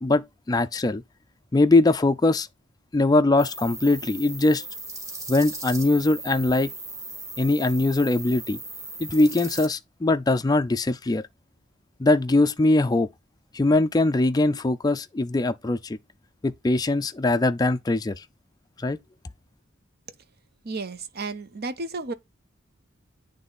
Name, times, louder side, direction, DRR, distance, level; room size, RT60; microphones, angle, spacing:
voice 1, 0.0-1.0 1.5-2.5 2.9-4.6 5.3-6.7 7.4-8.6 9.0-11.2 12.0-13.1 13.5-16.0 16.4-18.2 18.8-19.0, left 2 dB, 20° left, 0.4 m, -21 dB
sound 1, 3.4-9.7, right 2 dB, 15° right, 1.8 m, -37 dB
voice 2, 20.6-22.1, right 3 dB, 50° right, 0.8 m, -32 dB
9.2 x 3.3 x 4.0 m
head